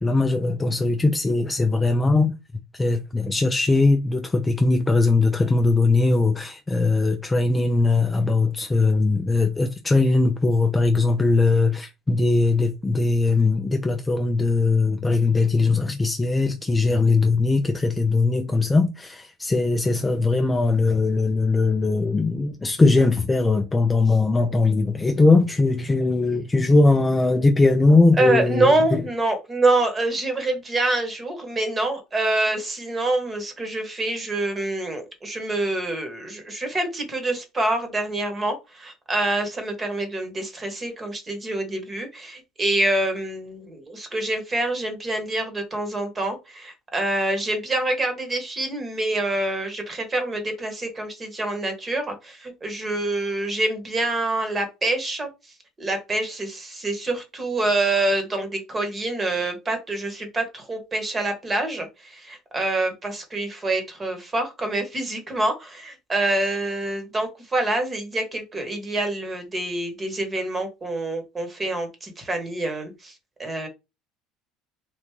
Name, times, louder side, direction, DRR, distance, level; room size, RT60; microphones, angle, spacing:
voice 1, 0.0-2.3 2.7-29.0, left 3 dB, 15° left, 0.4 m, -20 dB
voice 2, 28.2-55.3 55.8-73.1 73.4-73.7, right 2 dB, 20° right, 1.1 m, -26 dB
3.4 x 2.5 x 3.1 m
supercardioid pair, 110°, 0 cm